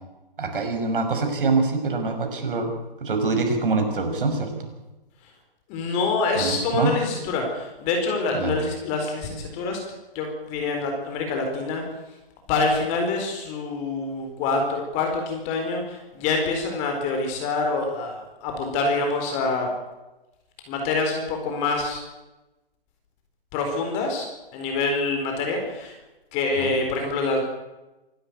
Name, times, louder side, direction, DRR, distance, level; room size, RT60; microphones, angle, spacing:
voice 1, 0.4-4.7 6.3-6.9 8.3-8.5 26.6-26.7, right 3 dB, 65° right, 4 dB, 6.0 m, -25 dB
voice 2, 5.7-9.8 10.1-11.8 12.5-19.7 20.7-22.0 23.5-24.3 24.5-26.0 26.3-27.4, left 3 dB, 25° left, 3 dB, 4.4 m, -26 dB
26.5 x 12.5 x 9.5 m, 1.0 s
hypercardioid pair, 145°, 29 cm